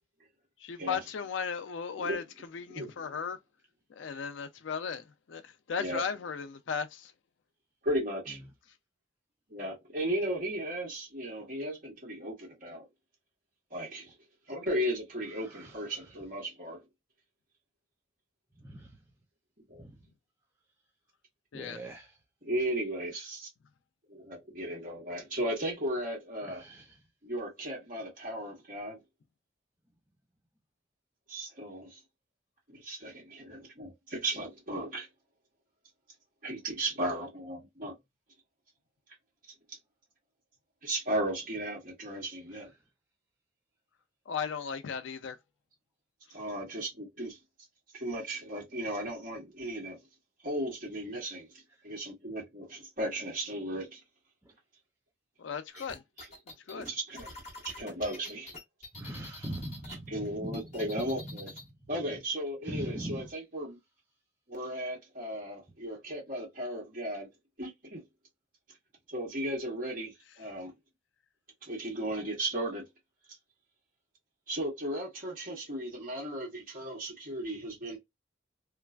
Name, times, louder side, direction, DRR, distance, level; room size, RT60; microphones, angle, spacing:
voice 1, 0.6-2.2 2.5-3.4 3.9-7.1 21.5-21.8 44.3-45.4 55.4-56.0 56.7-56.9, left 6 dB, 80° left, 0.4 m, -36 dB
voice 2, 2.8-3.1 5.8-6.0 7.8-8.4 9.5-12.9 13.7-14.1 14.5-16.8 19.7-19.8 22.4-23.5 24.1-26.6 27.2-29.0 31.3-32.0 32.7-35.1 36.4-38.0 39.7-39.8 40.8-42.7 46.3-47.4 47.9-50.0 50.4-51.5 51.8-54.0 56.7-57.3 57.8-58.5 59.9-61.5 61.9-63.8 64.5-67.3 67.6-68.0 69.1-70.7 71.6-72.9 74.5-78.0, right 1 dB, 45° right, 1.7 m, -35 dB
voice 3, 21.5-22.1 26.5-26.8 59.0-60.6 62.7-63.3, right 1 dB, 10° right, 0.4 m, -40 dB
sound 1, 55.7-60.0 60.2-61.7, left 2 dB, 40° left, 1.2 m, -47 dB
3.0 x 2.3 x 2.3 m
head